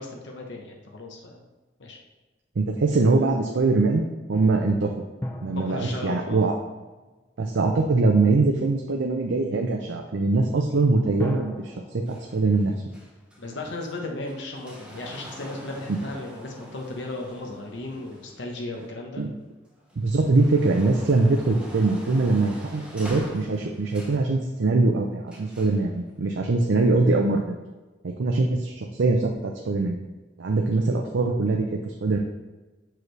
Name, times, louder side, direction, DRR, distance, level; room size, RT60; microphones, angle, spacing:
voice 1, 0.0-1.5 1.8-2.0 5.5-6.4 13.4-19.2, left 2 dB, 80° left, 1 dB, 0.9 m, -35 dB
voice 2, 2.6-4.9 5.4-6.5 7.4-12.7 19.2-19.3 20.0-27.5 28.0-30.0 30.4-32.2, right 3 dB, 85° right, 1 dB, 0.5 m, -22 dB
sound 1, 5.2-7.8 11.2-13.8 14.1-14.2, left 1 dB, 15° left, 0.4 m, -40 dB
sound 2, 12.1-19.3 19.7-24.3 25.3-25.8 26.7-26.8, equal, 5° right, 0.9 m, -45 dB
6.2 x 4.8 x 3.3 m, 1.2 s
head